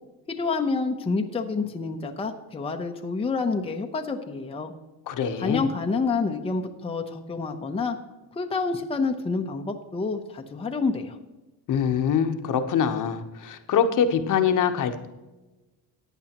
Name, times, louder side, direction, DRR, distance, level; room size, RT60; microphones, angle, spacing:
voice 1, 0.3-4.7 5.4-8.0 8.3-11.2, left 4 dB, 15° left, 4 dB, 0.8 m, -28 dB
voice 2, 5.1-5.7 11.7-15.1, left 7 dB, 55° left, 7 dB, 1.0 m, -24 dB
15.0 x 9.1 x 3.0 m, 1.1 s
cardioid pair, 130°, 37 cm